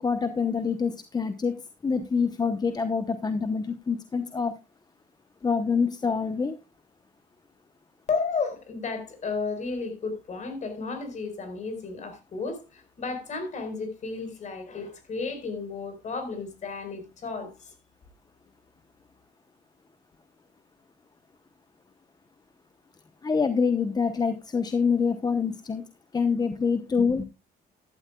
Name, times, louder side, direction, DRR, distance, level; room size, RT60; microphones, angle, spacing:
voice 1, 0.0-4.6 5.4-6.6 23.2-25.8 26.1-27.2, left 5 dB, 25° left, 0.9 m, -26 dB
voice 2, 8.1-17.7, left 4 dB, 45° left, 4.5 m, -33 dB
14.0 x 12.0 x 2.3 m
cardioid pair, 110°, 17 cm